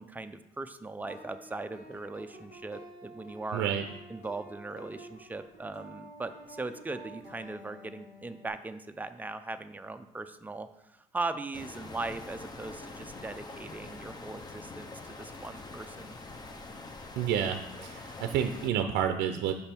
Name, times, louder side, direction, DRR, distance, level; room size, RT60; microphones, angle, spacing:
voice 1, 0.0-3.7 4.1-16.2, right 3 dB, 10° right, 9 dB, 0.4 m, -39 dB
sound 1, 1.1-8.5, right 1 dB, 80° left, 2.5 m, -50 dB
voice 2, 3.5-3.9 17.2-19.5, right 9 dB, 85° right, 6 dB, 0.5 m, -29 dB
Wind in trees beside river, 11.5-18.7, left 3 dB, 25° left, 0.7 m, -45 dB
6.7 x 5.3 x 4.4 m, 0.86 s
cardioid pair, 110°, 17 cm